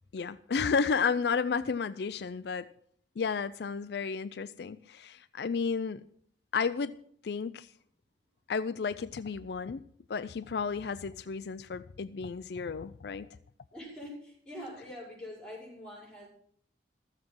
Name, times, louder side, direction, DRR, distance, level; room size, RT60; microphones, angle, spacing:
voice 1, 0.1-2.7 3.2-6.0 6.5-7.0 7.2-7.7 8.5-13.3, left 5 dB, 65° left, 0.4 m, -32 dB
voice 2, 13.7-16.3, left 1 dB, 5° left, 5.4 m, -44 dB
14.0 x 7.4 x 6.1 m
head